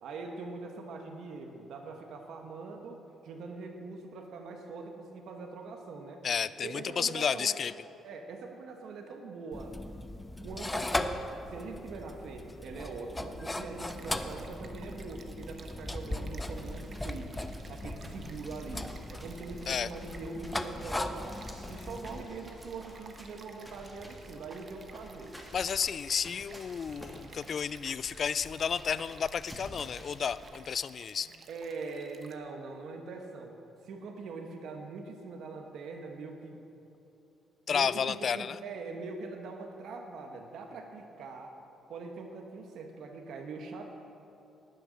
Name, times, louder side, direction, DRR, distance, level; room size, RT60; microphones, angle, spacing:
voice 1, 0.0-6.2 6.6-7.6 8.0-9.8 10.4-11.2 11.5-21.4 21.7-25.4 31.2-33.6 33.8-36.6 37.7-41.5 41.9-43.9, right 4 dB, 75° right, 3 dB, 1.2 m, -43 dB
voice 2, 6.2-7.7 19.7-19.9 25.5-31.3 37.7-38.6, left 7 dB, 50° left, 17 dB, 0.3 m, -32 dB
sound 1, 9.5-22.2, left 1 dB, 10° left, 0.7 m, -38 dB
Stream, 13.9-32.4, right 4 dB, 50° right, 1.0 m, -55 dB
sound 2, 16.6-30.5, equal, 5° right, 2.5 m, -50 dB
18.5 x 6.7 x 6.3 m, 2.9 s
cardioid pair, 90°, 0 cm